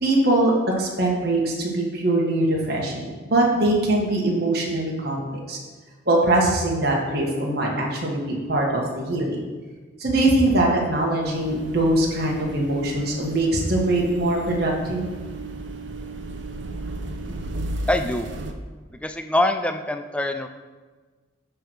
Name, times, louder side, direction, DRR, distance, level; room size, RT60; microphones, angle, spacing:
voice 1, 0.0-3.0 3.3-5.6 6.0-9.4 10.0-15.1, right 1 dB, 50° right, -2 dB, 1.5 m, -22 dB
sound 1, 11.2-18.5, right 2 dB, 65° right, 0.7 m, -34 dB
voice 2, 17.9-18.3 19.0-20.5, left 1 dB, 5° left, 7 dB, 0.4 m, -24 dB
10.0 x 3.4 x 6.2 m, 1.4 s
head